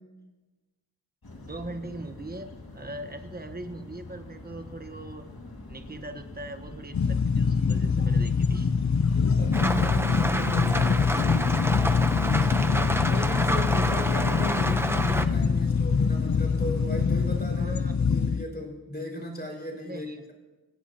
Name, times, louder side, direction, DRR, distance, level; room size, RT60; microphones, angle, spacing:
sound 1, 1.2-17.4, left 2 dB, 70° left, 2.2 m, -44 dB
voice 1, 1.4-5.3 5.7-8.8 11.6-11.9 12.4-13.2 17.5-18.0 19.8-20.2, right 1 dB, 25° right, 7 dB, 1.2 m, -41 dB
sound 2, 6.9-18.4, left 5 dB, 50° left, 0.6 m, -24 dB
voice 2, 9.1-11.7 12.2-17.8 18.1-20.3, equal, 25° left, 0 dB, 5.2 m, -36 dB
Rain, 9.5-15.3, right 1 dB, 5° right, 0.8 m, -29 dB
26.0 x 17.5 x 2.9 m, 1.2 s
wide cardioid pair, 65°, 38 cm